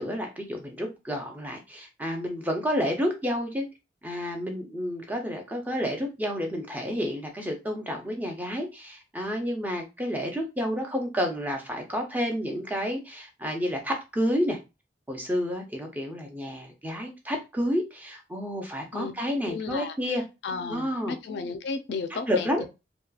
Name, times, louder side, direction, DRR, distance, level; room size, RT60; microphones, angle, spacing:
voice 1, 0.0-3.6 4.0-14.6 15.1-20.2 20.7-21.2 22.1-22.6, equal, 10° right, 0.5 m, -30 dB
voice 2, 19.4-20.0 20.4-22.7, left 4 dB, 70° left, 0.4 m, -33 dB
2.8 x 2.2 x 2.3 m
head